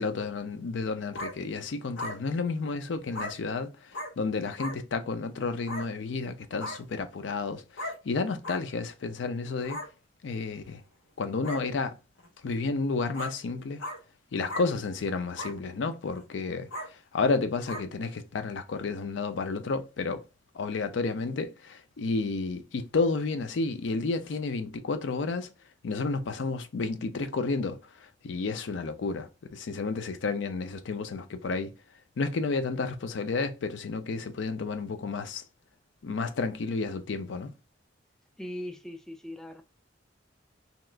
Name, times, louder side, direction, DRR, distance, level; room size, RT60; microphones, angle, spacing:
voice 1, 0.0-3.7 4.2-9.8 10.2-10.8 11.2-11.9 12.4-13.8 14.3-16.7 17.1-20.2 20.5-25.5 25.8-27.8 28.2-31.7 32.2-35.4 36.0-37.5, left 4 dB, 70° left, 0.4 m, -31 dB
sound 1, 1.1-1.3 2.0-2.2 3.1-3.3 3.9-4.1 4.6-4.7 5.7-5.8 6.6-6.8 7.8-8.0 8.4-8.6 9.6-9.9 10.7-10.8 11.4-11.6 12.2-12.3 13.1-13.3 13.8-14.0 14.5-14.7 15.4-15.5 16.1-16.2 16.7-16.9 17.7-17.8, left 1 dB, 85° left, 1.1 m, -36 dB
voice 2, 38.4-39.6, left 1 dB, 5° left, 0.3 m, -39 dB
2.9 x 2.4 x 3.2 m
head